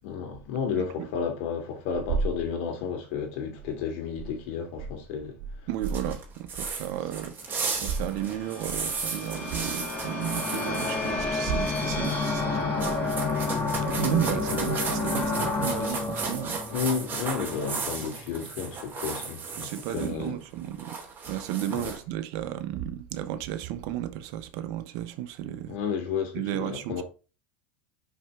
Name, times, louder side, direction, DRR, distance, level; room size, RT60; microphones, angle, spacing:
voice 1, 0.0-5.3 16.7-20.4 21.7-21.9 25.7-27.0, left 6 dB, 70° left, 2.9 m, -32 dB
voice 2, 5.7-16.6 19.5-21.0 21.3-25.8 26.3-27.0, right 11 dB, 65° right, 1.1 m, -33 dB
sound 1, 5.8-11.1 11.4-12.4 12.8-20.1 20.4-22.0, right 5 dB, 35° right, 3.1 m, -35 dB
sound 2, 7.5-17.8, left 3 dB, 30° left, 3.4 m, -31 dB
6.1 x 5.9 x 3.7 m
hypercardioid pair, 100°, 6 cm